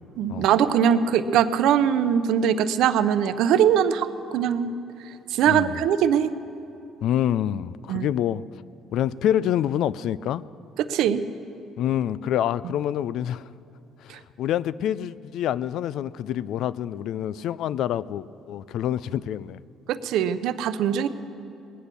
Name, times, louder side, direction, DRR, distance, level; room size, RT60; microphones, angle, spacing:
voice 1, 0.2-4.7 5.3-6.3 7.9-8.1 10.8-11.2 14.1-14.2 19.9-21.1, right 9 dB, 75° right, 12 dB, 0.7 m, -21 dB
voice 2, 7.0-8.4 8.9-10.4 11.8-13.5 14.0-19.6, left 11 dB, 70° left, 19 dB, 0.4 m, -27 dB
19.5 x 10.0 x 6.9 m, 2.8 s
supercardioid pair, 75°, 0 cm